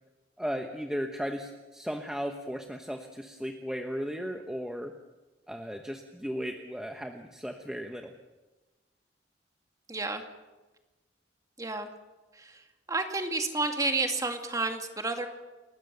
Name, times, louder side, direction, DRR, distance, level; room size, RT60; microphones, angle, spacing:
voice 1, 0.4-4.9 5.5-8.1, equal, 5° right, 4 dB, 1.1 m, -36 dB
voice 2, 9.9-10.2 11.6-11.9 12.3-12.6 12.9-15.3, right 3 dB, 20° right, 5 dB, 2.3 m, -30 dB
29.5 x 14.5 x 7.0 m, 1.1 s
head